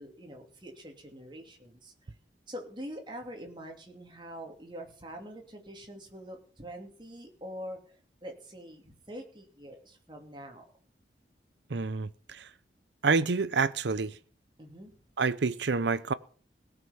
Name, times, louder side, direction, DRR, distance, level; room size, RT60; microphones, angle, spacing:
voice 1, 0.0-1.9 2.5-10.7 14.6-15.0, equal, 25° right, 2.8 m, -44 dB
voice 2, 11.7-12.5 13.0-14.2 15.2-16.1, right 4 dB, 80° right, 0.6 m, -28 dB
18.0 x 6.0 x 7.1 m
head